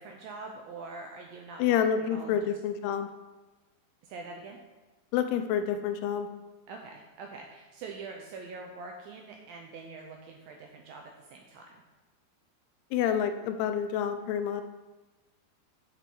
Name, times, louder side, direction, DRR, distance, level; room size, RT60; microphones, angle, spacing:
voice 1, 0.0-2.5 4.0-4.6 6.7-11.8, right 3 dB, 80° right, 2 dB, 2.1 m, -44 dB
voice 2, 1.6-3.1 5.1-6.3 12.9-14.6, left 8 dB, 85° left, 8 dB, 2.5 m, -28 dB
6.8 x 6.2 x 4.5 m, 1.2 s
omnidirectional pair, 4.8 m